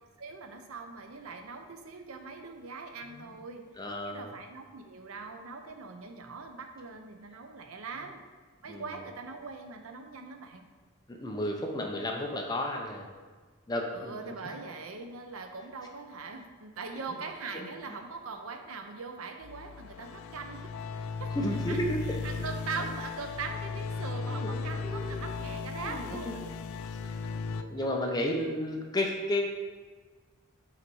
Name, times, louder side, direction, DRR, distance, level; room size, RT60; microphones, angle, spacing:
voice 1, 0.2-3.7 4.0-8.2 8.6-10.7 13.9-21.3 21.7-21.8 22.1-26.4 26.8-27.1 27.6-28.1, right 4 dB, 75° right, 5 dB, 0.6 m, -41 dB
voice 2, 3.8-4.3 8.7-8.8 11.1-13.1 13.7-14.3 17.5-17.7 21.4-22.2 24.3-25.3 25.8-26.4 27.1-27.2 27.7-29.4, left 1 dB, 20° left, 1 dB, 0.6 m, -33 dB
sound 1, 19.4-27.6, left 4 dB, 75° left, 0.4 m, -36 dB
5.8 x 4.0 x 4.6 m, 1.4 s
head